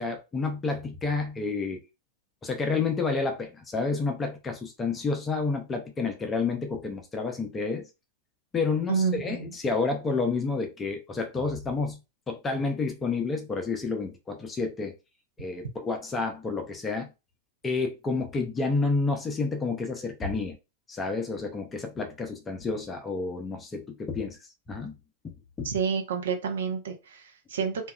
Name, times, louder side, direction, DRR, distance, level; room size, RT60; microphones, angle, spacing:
voice 1, 0.0-1.8 2.4-7.9 8.5-12.0 12.3-14.9 15.4-17.1 17.6-20.6 20.9-24.4 24.7-24.9 25.2-25.7, left 4 dB, 20° left, 0.5 m, -30 dB
voice 2, 8.9-9.5 25.6-27.9, right 6 dB, 65° right, 0.6 m, -29 dB
2.7 x 2.3 x 2.2 m
figure-of-eight pair, 90°, 0 cm